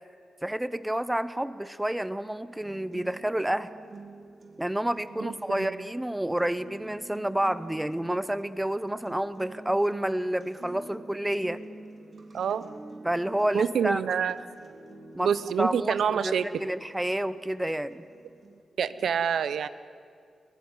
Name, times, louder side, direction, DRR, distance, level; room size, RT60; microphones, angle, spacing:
voice 1, 0.4-3.7 4.6-11.6 13.0-14.2 15.1-15.3 15.6-18.0, right 1 dB, 10° right, 15 dB, 0.7 m, -29 dB
sound 1, 2.6-18.6, right 2 dB, 45° right, 3.1 m, -48 dB
voice 2, 5.2-5.7 12.3-12.7 13.5-14.4 15.2-16.7 18.8-19.7, right 7 dB, 80° right, 15 dB, 0.8 m, -27 dB
23.0 x 19.0 x 9.8 m, 2.2 s
wide cardioid pair, 115°, 0 cm